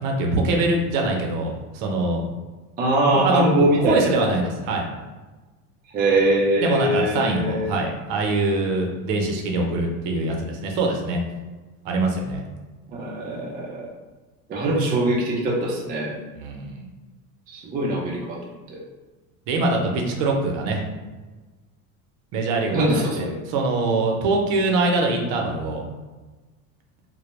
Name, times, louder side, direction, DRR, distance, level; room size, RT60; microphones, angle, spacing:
voice 1, 0.0-2.2 3.1-4.8 6.6-11.2 11.8-12.4 16.4-16.9 19.5-20.8 22.3-25.8, right 2 dB, 60° right, 1 dB, 0.6 m, -23 dB
voice 2, 2.8-4.4 5.9-7.7 12.9-13.9 14.5-16.2 17.5-18.4 18.7-18.8 22.7-23.3, right 1 dB, 20° right, -3 dB, 0.4 m, -22 dB
2.1 x 2.1 x 3.0 m, 1.2 s
supercardioid pair, 105°, 43 cm